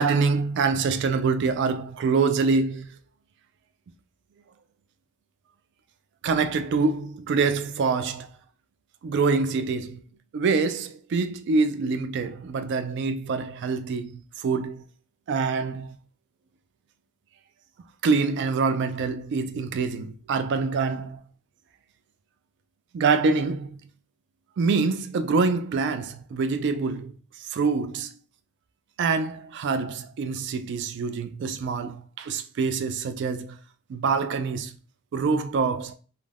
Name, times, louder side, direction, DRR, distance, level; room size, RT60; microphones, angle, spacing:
voice 1, 0.0-2.9 6.2-8.3 9.0-10.0 10.3-14.1 14.4-14.8 15.3-15.9 18.0-21.2 22.9-23.7 24.6-27.1 27.5-28.1 29.0-33.6 33.9-34.7 35.1-35.9, right 4 dB, 55° right, 0.3 m, -25 dB
2.4 x 2.1 x 3.2 m
head